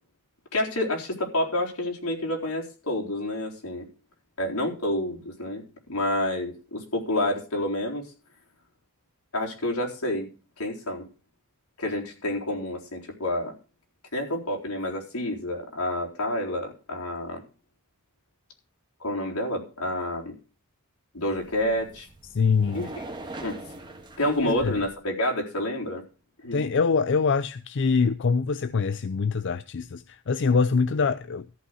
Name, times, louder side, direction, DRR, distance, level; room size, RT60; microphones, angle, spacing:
voice 1, 0.5-3.9 4.4-8.0 9.3-10.3 10.6-11.1 11.8-13.5 14.1-17.4 19.0-20.3 21.1-22.1 22.7-23.0 23.4-23.6 24.2-26.0 26.4-26.6, left 1 dB, 85° left, 4.0 m, -29 dB
sound 1, 21.2-25.0, right 2 dB, 20° right, 1.9 m, -42 dB
voice 2, 22.3-22.9 24.4-24.8 26.5-31.5, left 5 dB, 55° left, 0.5 m, -24 dB
14.0 x 5.7 x 6.3 m
head